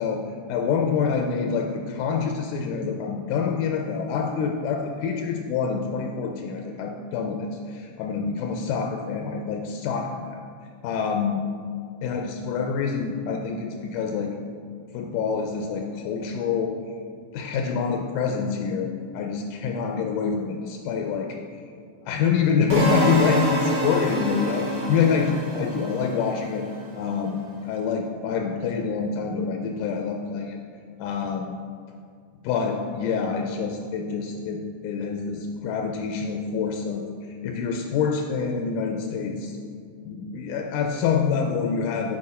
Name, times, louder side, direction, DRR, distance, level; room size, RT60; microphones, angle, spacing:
voice 1, 0.0-10.4 10.8-11.4 12.0-14.4 14.9-16.8 17.3-21.4 22.0-26.6 27.0-27.4 27.7-30.6 31.0-31.6 32.4-37.0 37.4-39.6 40.1-42.2, left 6 dB, 80° left, 3 dB, 2.0 m, -26 dB
sound 1, 22.7-26.8, right 2 dB, 55° right, 1.3 m, -27 dB
8.5 x 4.6 x 4.2 m, 2.2 s
omnidirectional pair, 3.7 m